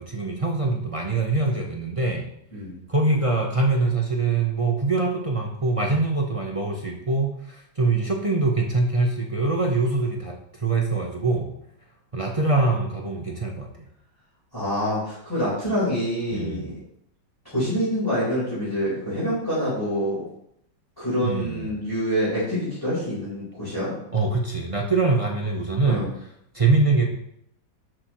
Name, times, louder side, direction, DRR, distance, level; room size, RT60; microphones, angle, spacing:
voice 1, 0.0-2.2 2.9-10.3 10.6-11.5 12.1-13.7 16.3-16.7 21.2-21.7 24.1-26.1 26.5-27.1, right 3 dB, 25° right, 0 dB, 1.0 m, -23 dB
voice 2, 14.5-16.7 17.4-20.2 21.0-23.9 25.9-26.1, equal, 10° left, -10 dB, 4.5 m, -26 dB
11.5 x 8.3 x 3.2 m, 0.72 s
omnidirectional pair, 1.9 m